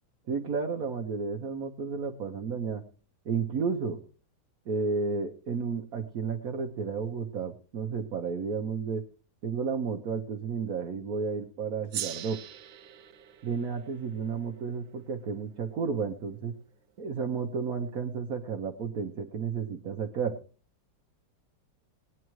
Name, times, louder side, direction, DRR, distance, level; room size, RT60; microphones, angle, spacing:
voice 1, 0.3-2.8 3.2-4.0 4.7-9.0 9.4-12.4 13.4-16.5 17.0-20.4, right 5 dB, 55° right, 3 dB, 1.3 m, -32 dB
Gong, 11.9-16.7, right 10 dB, 90° right, 1.5 m, -43 dB
20.0 x 9.9 x 3.1 m, 0.38 s
omnidirectional pair, 2.0 m